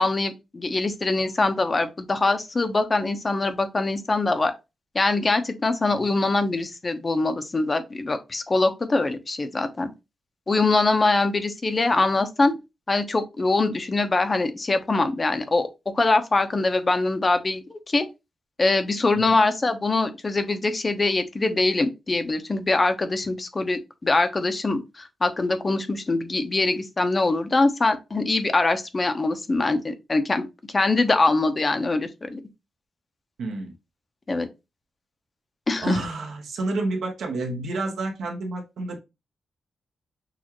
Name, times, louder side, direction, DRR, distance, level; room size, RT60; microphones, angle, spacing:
voice 1, 0.0-4.5 4.9-9.9 10.5-12.5 12.9-15.7 15.9-18.1 18.6-30.5 30.7-32.4 34.3-34.5 35.7-36.0, left 3 dB, 25° left, 0.6 m, -23 dB
voice 2, 33.4-33.7 35.8-39.0, right 2 dB, 75° right, 1.2 m, -29 dB
6.3 x 2.4 x 2.9 m
wide cardioid pair, 170°, 0 cm